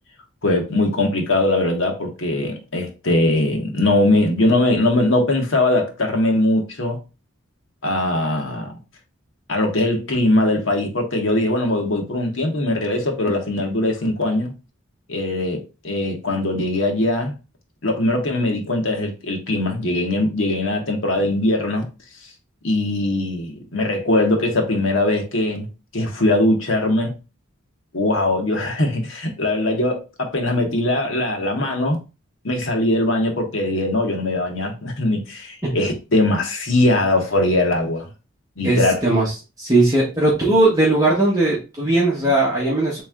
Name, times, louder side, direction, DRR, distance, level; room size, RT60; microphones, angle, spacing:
voice 1, 0.4-7.0 7.8-8.7 9.5-14.5 15.1-17.3 17.8-21.9 22.6-25.7 25.9-27.2 27.9-32.0 32.4-38.1 38.6-38.9, left 1 dB, 65° left, 1.1 m, -21 dB
voice 2, 38.6-43.0, right 2 dB, 15° right, 1.0 m, -18 dB
3.6 x 3.1 x 3.5 m
head